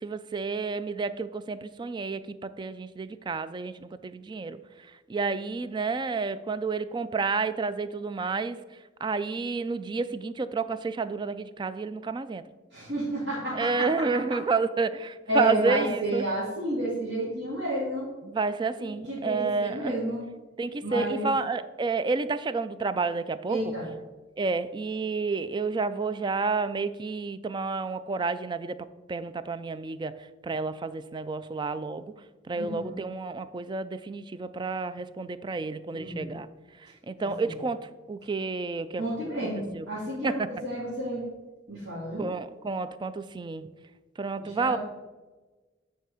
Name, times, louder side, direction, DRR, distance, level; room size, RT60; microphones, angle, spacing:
voice 1, 0.0-4.6 5.1-8.6 9.0-12.4 13.5-16.2 18.2-19.9 20.6-23.6 24.4-28.8 29.1-30.1 30.4-32.1 32.5-36.5 36.8-37.8 38.1-39.0 39.7-39.9 40.2-40.4 42.2-43.7 44.2-44.8, right 4 dB, 25° right, 14 dB, 0.3 m, -30 dB
voice 2, 12.7-13.9 15.3-18.1 18.8-20.2 20.8-21.3 23.5-23.9 32.5-32.9 35.9-36.3 37.2-37.5 39.0-41.2 41.7-42.3 44.4-44.8, right 1 dB, 65° right, -10 dB, 2.6 m, -31 dB
9.3 x 4.5 x 4.9 m, 1.2 s
head